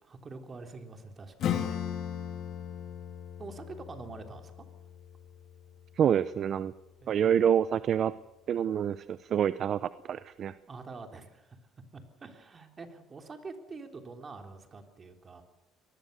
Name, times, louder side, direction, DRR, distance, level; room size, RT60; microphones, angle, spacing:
voice 1, 0.0-1.8 3.4-4.7 7.0-7.5 10.7-11.6 11.9-15.4, right 3 dB, 30° right, 5 dB, 3.6 m, -46 dB
Acoustic guitar / Strum, 1.4-6.6, left 9 dB, 60° left, 2.9 m, -37 dB
voice 2, 6.0-6.7 7.1-8.1 8.5-10.5, right 9 dB, 50° right, 15 dB, 0.7 m, -27 dB
24.5 x 19.5 x 6.9 m, 0.97 s
cardioid pair, 105°, 0 cm